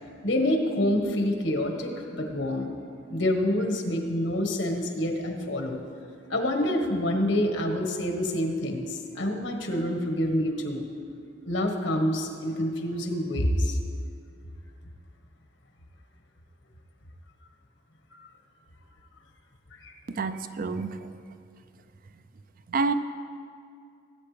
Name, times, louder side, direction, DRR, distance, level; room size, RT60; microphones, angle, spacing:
voice 1, 0.2-2.7 3.1-5.8 6.3-10.8 11.5-13.8 18.1-18.3 19.7-19.9, left 1 dB, 85° left, 3 dB, 1.4 m, -27 dB
voice 2, 20.2-21.1 22.7-22.9, right 4 dB, 50° right, 11 dB, 0.5 m, -28 dB
19.0 x 8.5 x 3.3 m, 2.4 s
head